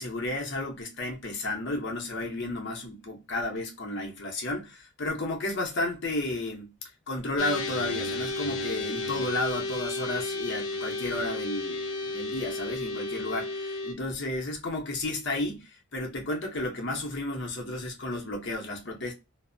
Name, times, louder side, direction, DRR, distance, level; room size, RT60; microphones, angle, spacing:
voice 1, 0.0-6.7 7.1-19.1, left 2 dB, 55° left, 0.7 m, -32 dB
sound 1, 7.4-13.9, left 2 dB, 90° left, 0.5 m, -33 dB
2.5 x 2.0 x 2.5 m
head